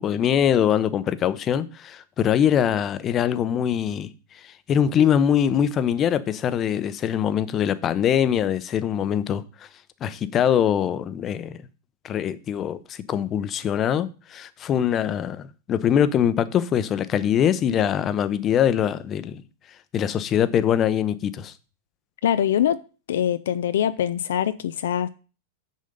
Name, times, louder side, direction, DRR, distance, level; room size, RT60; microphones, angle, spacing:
voice 1, 0.0-4.1 4.4-9.4 10.0-11.6 12.0-19.4 19.9-21.5, left 9 dB, 30° left, 0.7 m, -23 dB
voice 2, 22.2-22.8 23.1-25.1, left 10 dB, 70° left, 0.4 m, -23 dB
6.7 x 6.3 x 5.2 m
hypercardioid pair, 100°, 0 cm